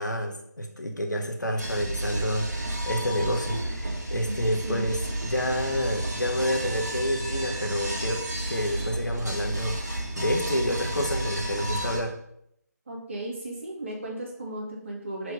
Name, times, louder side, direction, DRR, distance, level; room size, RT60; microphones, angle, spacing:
voice 1, 0.0-12.2, equal, 80° left, 3 dB, 1.4 m, -29 dB
sound 1, 1.6-12.0, right 1 dB, 65° right, 2.4 m, -31 dB
voice 2, 12.9-15.3, right 1 dB, 45° right, -2 dB, 2.1 m, -35 dB
4.9 x 4.7 x 5.0 m, 0.73 s
figure-of-eight pair, 155°, 10 cm